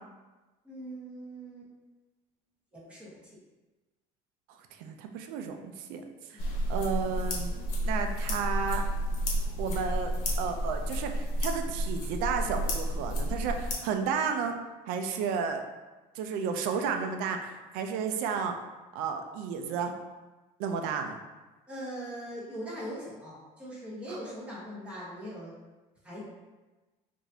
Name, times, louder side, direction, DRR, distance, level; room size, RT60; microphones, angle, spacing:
voice 1, 0.6-1.7 2.7-3.2 6.3-6.5 21.7-25.6 26.0-26.2, equal, 10° right, -8 dB, 1.2 m, -41 dB
voice 2, 4.8-6.0 6.3-6.4 6.7-7.5 7.8-8.8 9.6-10.1 10.4-14.6 14.9-15.6 16.1-18.6 18.9-19.9 20.6-21.2, right 6 dB, 75° right, 5 dB, 0.4 m, -32 dB
sound 1, 6.4-13.7, equal, 70° left, 1.1 m, -31 dB
4.8 x 2.6 x 2.7 m, 1.2 s
cardioid pair, 165°, 15 cm